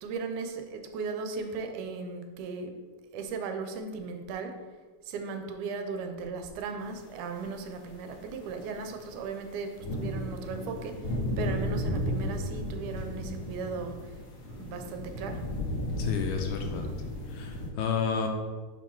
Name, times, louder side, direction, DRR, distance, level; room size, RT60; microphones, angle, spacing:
voice 1, 0.0-2.7 3.1-4.6 5.1-10.9 11.4-14.0 14.4-15.4, right 4 dB, 75° right, 5 dB, 2.0 m, -37 dB
sound 1, 7.3-7.4 8.0-17.7, left 1 dB, 55° left, 1.6 m, -34 dB
voice 2, 16.0-16.9 17.3-18.3, left 6 dB, 80° left, 4 dB, 1.8 m, -31 dB
5.8 x 4.7 x 4.5 m, 1.4 s
omnidirectional pair, 3.9 m